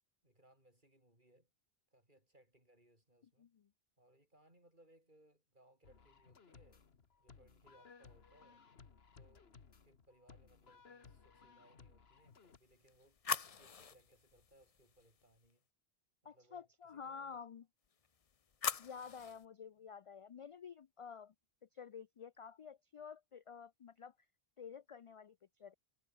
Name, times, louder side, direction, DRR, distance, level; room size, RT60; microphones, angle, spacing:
voice 1, 0.2-1.5 1.9-3.5 4.0-6.8 7.2-8.6 9.1-9.5 9.8-15.7 16.2-17.4, right 1 dB, 50° right, 7.8 m, -69 dB
voice 2, 3.4-3.7 16.2-17.6 18.8-21.3 21.7-24.1 24.6-25.7, left 6 dB, 55° left, 0.3 m, -51 dB
sound 1, 5.8-12.6, left 5 dB, 75° left, 1.8 m, -61 dB
sound 2, 12.4-15.5 17.9-19.4, left 6 dB, 40° left, 0.7 m, -44 dB
omnidirectional pair, 1.1 m